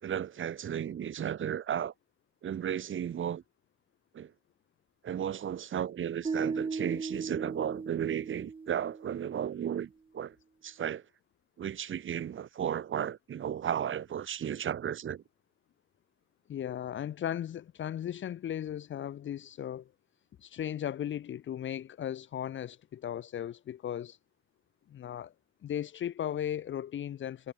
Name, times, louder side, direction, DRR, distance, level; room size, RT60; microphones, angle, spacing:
voice 1, 0.0-1.9 2.4-3.4 4.1-4.3 5.0-10.4 10.6-11.0 11.6-15.2, right 9 dB, 40° right, 2.3 m, -34 dB
sound 1, 6.2-9.4, right 4 dB, 15° right, 1.0 m, -37 dB
voice 2, 16.5-19.9 20.4-24.2 24.9-25.3 25.6-27.5, left 10 dB, 40° left, 0.9 m, -36 dB
cardioid pair, 120°, 30 cm